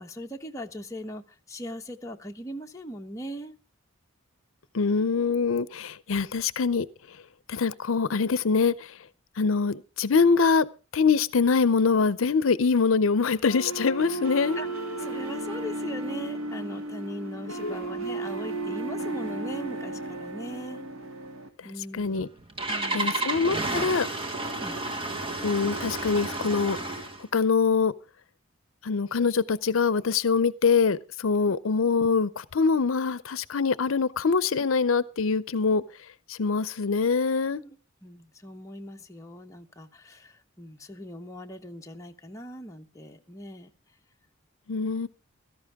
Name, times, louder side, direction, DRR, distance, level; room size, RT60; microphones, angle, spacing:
voice 1, 0.0-3.5 14.6-14.7 15.0-20.8 21.6-22.3 22.7-23.2 24.6-24.8 31.5-31.6 37.5-37.8 38.0-43.7, equal, 15° left, 2 dB, 1.1 m, -40 dB
voice 2, 4.7-7.2 7.5-9.0 9.4-10.6 10.9-14.6 17.6-17.7 21.6-22.3 22.9-24.1 25.4-27.9 28.8-35.8 36.3-37.6 44.7-45.1, left 5 dB, 75° left, 18 dB, 0.6 m, -24 dB
sound 1, 13.5-21.5, right 2 dB, 75° right, 2.3 m, -34 dB
Engine starting, 22.1-27.2, right 2 dB, 25° right, 1.6 m, -31 dB
16.5 x 13.5 x 3.6 m, 0.33 s
head